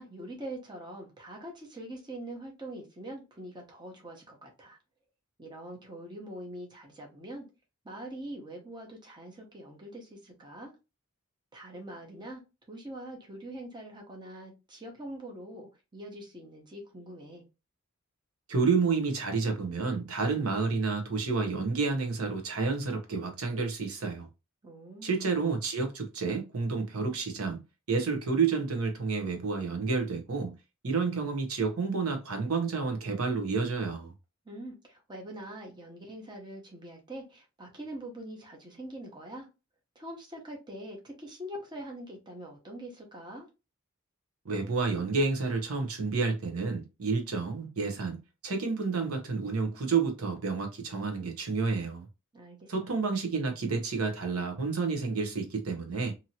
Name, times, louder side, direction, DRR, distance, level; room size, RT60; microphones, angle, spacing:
voice 1, 0.0-4.8 5.4-7.5 7.8-10.7 11.5-12.4 12.7-17.5 24.6-25.1 34.4-39.5 39.9-43.5 52.3-52.7, right 1 dB, 20° right, 0.8 m, -43 dB
voice 2, 18.5-24.3 25.0-30.5 30.8-34.1 44.4-52.1 52.7-56.1, right 4 dB, 80° right, 0.8 m, -30 dB
2.7 x 2.7 x 2.8 m
head